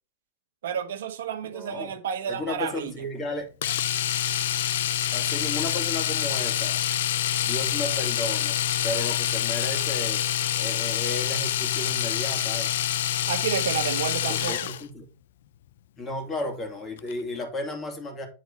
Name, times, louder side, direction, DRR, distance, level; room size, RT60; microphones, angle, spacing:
voice 1, 0.6-3.0 13.3-14.7, right 8 dB, 75° right, 1.2 m, -31 dB
voice 2, 1.5-1.9 2.3-3.5 5.1-6.8 7.4-10.2 10.6-12.8 14.3-15.1 16.0-18.3, left 1 dB, 25° left, 2.5 m, -34 dB
Domestic sounds home sounds, 3.6-14.9 17.0-17.1 17.4-17.5, left 11 dB, 75° left, 0.5 m, -26 dB
9.0 x 4.2 x 4.1 m
hypercardioid pair, 115°, 0 cm